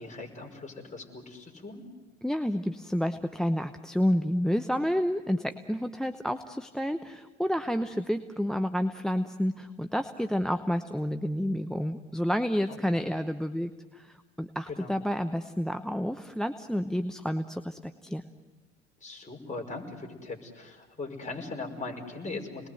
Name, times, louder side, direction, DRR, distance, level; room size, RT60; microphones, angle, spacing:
voice 1, 0.0-1.8 12.7-13.1 14.7-15.0 19.0-22.7, left 3 dB, 20° left, 1 dB, 5.6 m, -40 dB
voice 2, 2.2-18.2, equal, ahead, 9 dB, 0.9 m, -30 dB
29.5 x 20.5 x 7.9 m, 1.2 s
hypercardioid pair, 70°, 36 cm